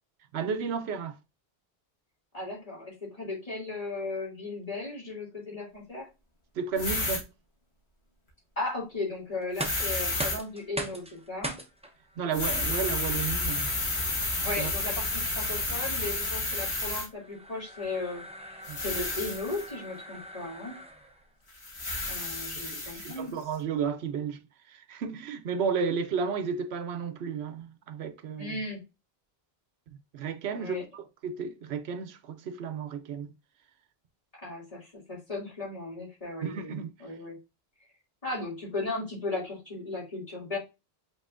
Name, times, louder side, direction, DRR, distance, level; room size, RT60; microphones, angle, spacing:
voice 1, 0.3-1.2 6.6-7.3 12.2-13.7 14.6-14.7 18.7-18.8 22.5-24.4 24.7-28.6 30.1-33.3 36.4-36.9, right 6 dB, 85° right, 0.9 m, -33 dB
voice 2, 2.3-6.1 8.6-11.6 14.4-20.8 22.1-23.4 28.4-28.8 30.5-30.8 34.4-36.7 37.0-37.4 38.2-40.6, left 2 dB, 35° left, 2.7 m, -36 dB
sound 1, 6.8-7.2 9.6-10.4 12.3-17.1 18.6-19.7 21.6-23.2, left 2 dB, 85° left, 1.9 m, -31 dB
sound 2, 9.4-21.3, right 1 dB, 5° right, 0.7 m, -42 dB
5.4 x 3.9 x 2.5 m
omnidirectional pair, 1.0 m